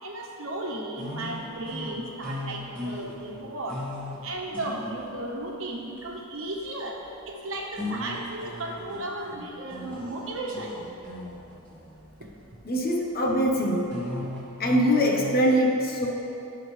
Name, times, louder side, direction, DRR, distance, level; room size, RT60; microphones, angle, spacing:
voice 1, 0.0-3.8 4.2-7.0 7.3-10.7, right 1 dB, 65° right, -1 dB, 1.3 m, -34 dB
sound 1, 1.0-5.4 6.0-6.1 7.8-12.5 13.5-15.5, left 1 dB, 5° left, 2.3 m, -38 dB
voice 2, 12.6-14.0 14.6-16.2, equal, 45° left, 0 dB, 1.1 m, -23 dB
16.5 x 5.9 x 3.3 m, 2.9 s
head